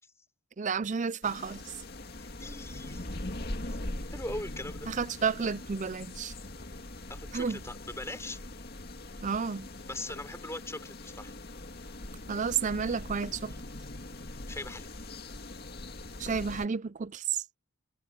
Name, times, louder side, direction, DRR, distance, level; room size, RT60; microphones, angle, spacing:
voice 1, 0.6-1.7 4.9-6.3 7.3-7.6 9.2-9.7 12.3-13.6 16.2-17.4, right 6 dB, 35° right, 0.4 m, -31 dB
sound 1, 1.2-16.7, left 1 dB, 45° left, 2.2 m, -42 dB
voice 2, 2.2-3.1 3.7-3.8 4.1-4.9 7.1-8.4 9.9-11.3 14.5-14.9, left 2 dB, 15° left, 3.7 m, -40 dB
head